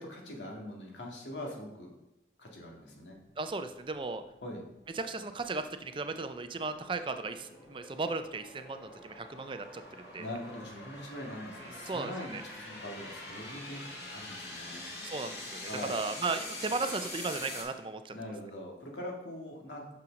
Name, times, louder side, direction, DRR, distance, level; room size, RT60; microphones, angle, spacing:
voice 1, 0.0-1.9 2.4-3.2 4.4-4.6 10.2-14.9 15.7-16.0 18.1-19.8, left 1 dB, 90° left, 0 dB, 1.8 m, -42 dB
sound 1, 3.2-17.6, left 2 dB, 65° left, 2.0 m, -45 dB
voice 2, 3.4-4.2 5.0-10.3 11.6-12.4 15.0-18.1, right 3 dB, 30° right, 9 dB, 0.4 m, -36 dB
6.1 x 5.7 x 5.2 m, 0.95 s
head